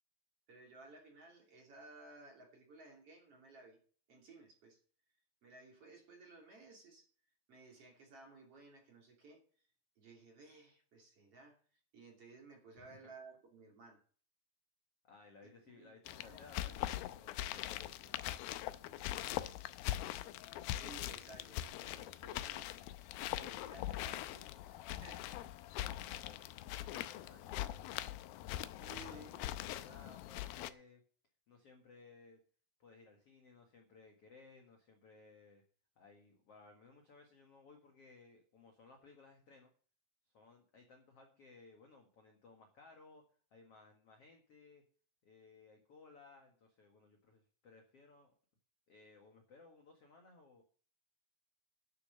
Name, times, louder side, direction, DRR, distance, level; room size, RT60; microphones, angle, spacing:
voice 1, 0.5-3.8 4.1-4.8 5.4-7.1 7.5-9.4 10.0-14.0 15.4-16.7 20.8-22.7 23.3-25.5 28.8-29.6, right 3 dB, 40° right, 1 dB, 3.3 m, -57 dB
voice 2, 15.1-18.2 19.1-19.5 25.8-28.3 28.8-29.2 29.6-31.0 31.5-32.4 32.8-35.6 35.9-39.7 40.3-43.2 43.5-44.8 45.2-48.3 48.9-50.6, left 3 dB, 55° left, 2 dB, 1.7 m, -60 dB
sound 1, 16.1-30.7, left 14 dB, 85° left, 2.2 m, -42 dB
11.5 x 7.0 x 6.5 m, 0.43 s
omnidirectional pair, 4.9 m